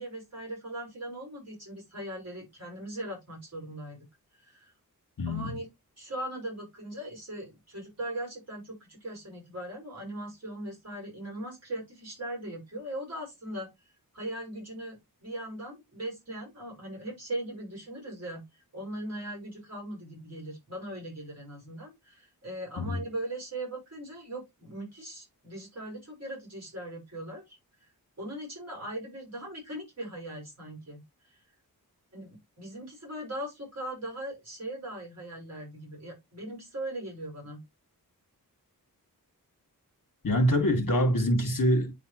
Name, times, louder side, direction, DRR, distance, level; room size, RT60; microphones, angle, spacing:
voice 1, 0.0-4.0 4.3-4.7 5.3-5.7 6.0-13.7 14.1-27.6 28.2-31.4 32.1-37.6, right 1 dB, 45° right, 5.3 m, -39 dB
voice 2, 5.2-5.5 22.8-23.0 40.2-41.9, equal, 60° left, 2.6 m, -25 dB
9.7 x 4.0 x 3.2 m
wide cardioid pair, 95°, 37 cm